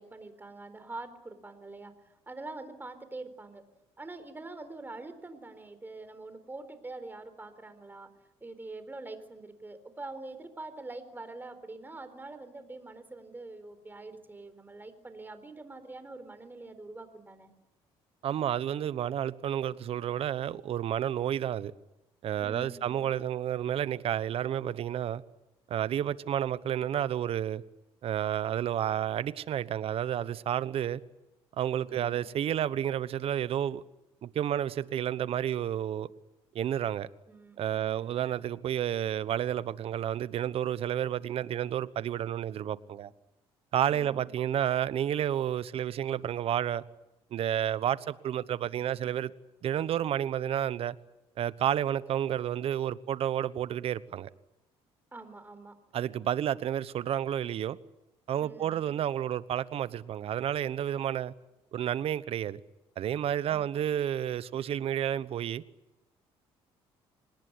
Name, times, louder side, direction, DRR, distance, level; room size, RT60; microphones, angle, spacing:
voice 1, 0.0-1.9 2.3-3.6 4.0-8.1 8.4-17.5 22.4-23.1 31.9-32.3 37.3-38.2 43.9-44.2 55.1-55.8 58.4-59.0 63.5-63.8, right 2 dB, 20° right, 4.1 m, -45 dB
voice 2, 18.2-21.7 22.2-25.2 25.7-27.6 28.0-31.0 31.6-33.8 34.2-36.1 36.5-37.1 37.6-43.1 43.7-46.8 47.3-49.3 49.6-50.9 51.4-54.3 55.9-57.8 58.3-61.3 61.7-62.6 63.0-65.6, right 10 dB, 60° right, 1.1 m, -30 dB
26.0 x 20.0 x 9.9 m
cardioid pair, 90°, 11 cm